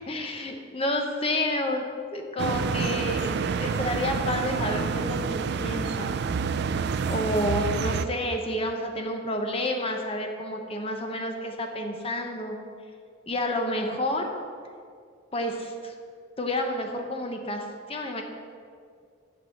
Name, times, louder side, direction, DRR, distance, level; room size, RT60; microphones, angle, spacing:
voice 1, 0.1-6.2 7.1-12.6 13.3-14.3 15.3-15.9 16.4-18.2, left 1 dB, 30° left, 3 dB, 0.9 m, -30 dB
sound 1, 2.4-8.1, right 5 dB, 55° right, 0.3 m, -28 dB
11.0 x 4.1 x 6.8 m, 2.2 s
head